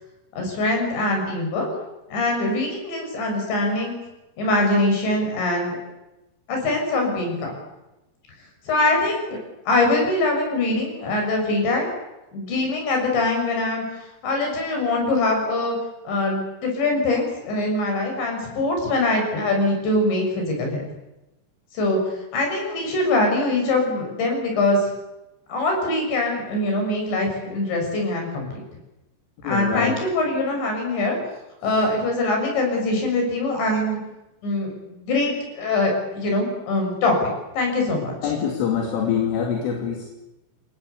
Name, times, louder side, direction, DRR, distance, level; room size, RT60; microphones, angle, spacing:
voice 1, 0.3-1.7 2.1-4.0 4.4-5.7 6.5-7.5 8.7-9.4 9.7-11.9 12.3-15.8 16.1-20.8 21.7-24.9 25.5-28.5 29.4-31.2 31.6-34.0 34.4-38.3, left 2 dB, 65° left, 2 dB, 9.1 m, -23 dB
voice 2, 29.4-30.0 38.2-40.1, left 7 dB, 80° left, 1 dB, 5.5 m, -24 dB
28.5 x 22.5 x 8.3 m, 0.98 s
omnidirectional pair, 5.6 m